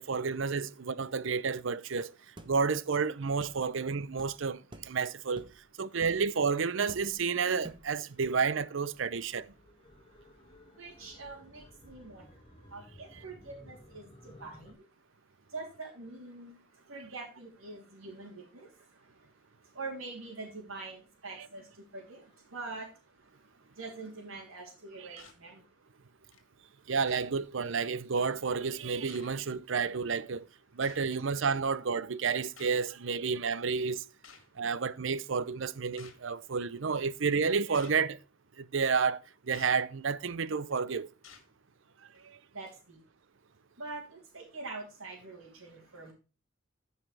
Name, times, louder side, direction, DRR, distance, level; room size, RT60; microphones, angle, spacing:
voice 1, 0.0-2.1 2.5-5.4 5.8-9.5 25.1-25.2 26.9-30.5 30.7-34.0 34.6-38.2 38.6-39.2 39.5-41.1 42.2-42.4, right 5 dB, 65° right, 0.6 m, -30 dB
sound 1, 2.4-2.6 3.4-3.6 4.2-4.3 4.7-4.9 5.4-5.6 6.0-6.2 6.9-7.2 7.6-7.9, right 1 dB, 25° right, 1.1 m, -48 dB
sound 2, 7.8-14.7, left 1 dB, 25° left, 1.7 m, -57 dB
voice 2, 10.8-12.3 12.7-14.7 15.5-16.5 16.9-18.7 19.7-21.7 21.9-22.9 23.8-25.6 42.5-43.0 43.8-46.1, right 3 dB, 90° right, 3.1 m, -44 dB
sound 3, 25.2-25.4 26.3-26.4 27.1-27.3 28.3-28.4 29.1-29.3 30.8-31.1 32.6-32.8 34.2-34.5 36.0-36.2 36.9-37.2 37.7-38.0 39.5-39.7 40.5-40.7 41.2-41.5 42.1-42.3, left 6 dB, 70° left, 2.2 m, -53 dB
15.0 x 5.6 x 3.3 m
head